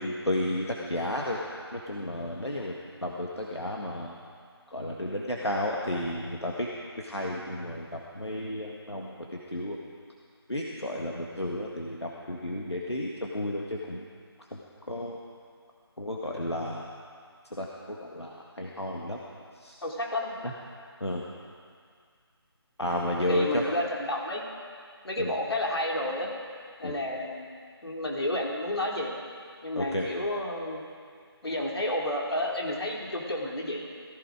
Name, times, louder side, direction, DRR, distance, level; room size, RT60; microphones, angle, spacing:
voice 1, 0.0-1.4 1.7-2.7 3.0-4.2 4.7-6.7 7.0-9.1 9.5-9.8 10.5-14.1 14.4-14.6 14.9-15.2 16.0-16.9 17.6-19.2 19.5-19.8 20.4-20.5 21.0-21.2 22.8-23.6 25.2-25.3 26.8-26.9 29.7-30.1, left 1 dB, 85° left, -2 dB, 1.8 m, -32 dB
voice 2, 19.8-20.4 23.3-24.5 25.0-26.3 26.8-27.5 27.8-29.2 29.6-30.8 31.4-33.8, left 1 dB, 70° left, -1 dB, 3.3 m, -31 dB
18.0 x 15.5 x 5.0 m, 2.1 s
figure-of-eight pair, 155°, 14 cm